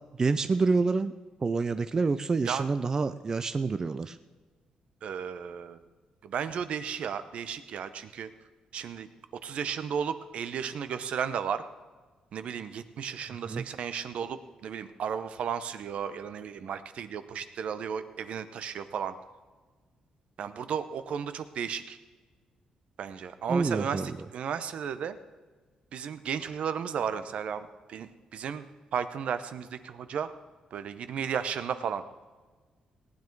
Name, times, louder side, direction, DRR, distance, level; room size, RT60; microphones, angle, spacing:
voice 1, 0.2-1.1 1.4-4.2 13.5-13.6 23.5-24.1, right 4 dB, 30° right, 10 dB, 0.4 m, -27 dB
voice 2, 5.0-5.8 6.2-8.3 8.7-9.1 9.4-11.6 12.3-19.1 20.4-22.0 23.0-25.2 25.9-28.7 28.9-30.3 30.7-32.0, right 7 dB, 65° right, 11 dB, 0.8 m, -34 dB
18.0 x 9.5 x 4.6 m, 1.4 s
cardioid pair, 135°, 2 cm